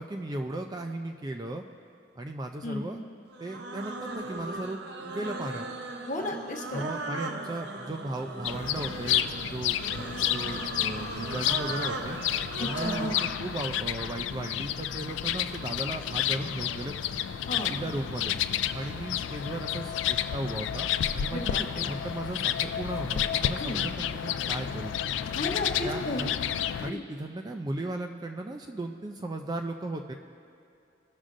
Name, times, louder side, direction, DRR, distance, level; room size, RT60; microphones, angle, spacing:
voice 1, 0.0-1.6 2.2-3.0 3.4-4.8 5.1-5.7 6.7-12.2 12.6-13.1 13.4-17.0 17.6-18.4 18.7-24.9 25.8-26.4 26.8-30.1, right 2 dB, 20° right, 4 dB, 0.3 m, -36 dB
sound 1, 3.3-13.3, right 3 dB, 60° right, 0.6 m, -38 dB
voice 2, 6.1-6.9 12.6-13.2 17.5-17.7 21.3-21.9 23.6-23.8 25.3-26.2 26.8-27.0, left 1 dB, 45° left, 1 dB, 1.0 m, -34 dB
sound 2, 8.4-26.9, left 10 dB, 75° left, 0.3 m, -31 dB
16.5 x 6.2 x 2.5 m, 2.6 s
head